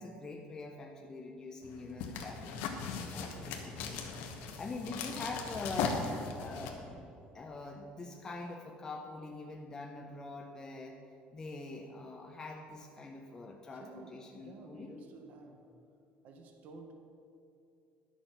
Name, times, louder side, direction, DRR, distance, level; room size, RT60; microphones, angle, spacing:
voice 1, 0.0-2.5 3.1-4.2 4.6-11.0 11.3-15.0, left 3 dB, 20° left, 1 dB, 0.6 m, -44 dB
sound 1, 1.6-6.7, left 5 dB, 85° left, 1.1 m, -38 dB
voice 2, 3.1-4.2 4.8-5.0 13.7-15.7 16.2-16.9, right 3 dB, 50° right, 5 dB, 1.0 m, -53 dB
10.5 x 7.0 x 5.6 m, 2.6 s
cardioid pair, 155°, 3 cm